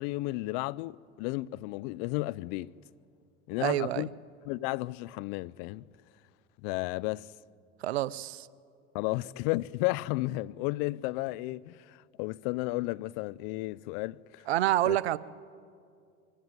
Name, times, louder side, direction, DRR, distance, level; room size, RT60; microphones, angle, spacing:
voice 1, 0.0-2.7 3.5-4.1 4.5-5.9 6.6-7.3 8.9-14.5 14.9-15.0, left 20 dB, 65° left, 0.6 m, -33 dB
voice 2, 3.6-4.0 7.8-8.5 14.5-15.2, right 14 dB, 90° right, 0.7 m, -27 dB
24.0 x 16.0 x 9.4 m
hypercardioid pair, 85°, 31 cm